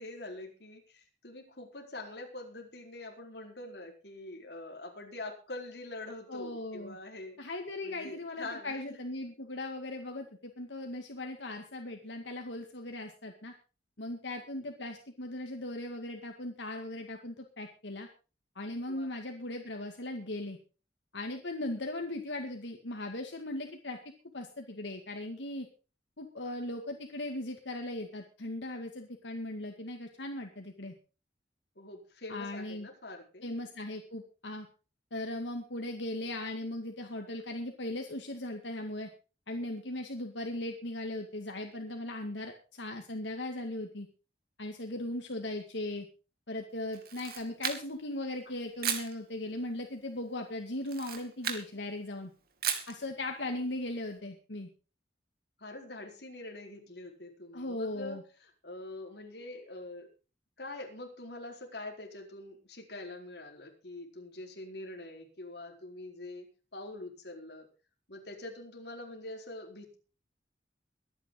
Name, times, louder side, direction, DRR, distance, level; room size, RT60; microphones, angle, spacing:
voice 1, 0.0-7.4 7.8-9.0 18.9-19.1 31.8-33.5 55.6-60.1 60.6-67.7 68.1-70.0, left 2 dB, 65° left, 2 dB, 4.4 m, -44 dB
voice 2, 6.3-7.0 7.4-13.5 14.0-18.1 18.6-20.6 21.1-24.0 24.3-25.7 26.2-30.9 32.3-32.9 33.4-34.7 35.1-39.1 39.5-44.1 44.6-46.1 46.5-52.3 52.9-54.7 57.5-58.2, left 1 dB, 90° left, 3 dB, 2.1 m, -38 dB
Camera, 46.9-48.1 48.8-49.1 50.8-51.7 52.6-53.0, right 8 dB, 55° right, 2.6 m, -35 dB
23.0 x 9.8 x 3.9 m, 0.34 s
head